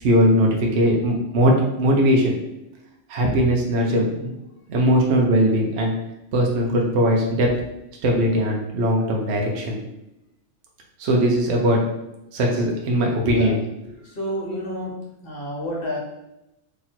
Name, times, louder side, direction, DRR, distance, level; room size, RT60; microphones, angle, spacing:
voice 1, 0.0-2.4 3.1-4.3 4.7-5.9 6.3-7.5 8.0-9.8 11.0-11.8 12.3-13.6, equal, 65° right, 0 dB, 0.9 m, -20 dB
voice 2, 14.0-14.9 15.2-16.0, equal, 50° left, -3 dB, 1.3 m, -29 dB
3.0 x 2.9 x 4.0 m, 0.89 s
omnidirectional pair, 1.3 m